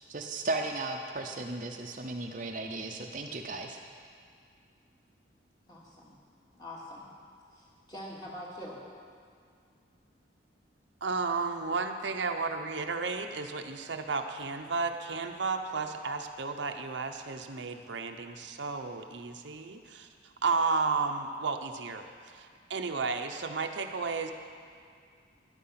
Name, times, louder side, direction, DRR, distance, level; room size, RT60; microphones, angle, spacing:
voice 1, 0.1-3.8, right 2 dB, 45° right, 3 dB, 0.7 m, -35 dB
voice 2, 5.7-6.1 6.5-7.1 7.5-8.8, left 1 dB, 20° left, -5 dB, 2.4 m, -44 dB
voice 3, 11.0-24.3, right 4 dB, 75° right, 5 dB, 0.8 m, -33 dB
12.5 x 10.5 x 5.8 m, 2.3 s
head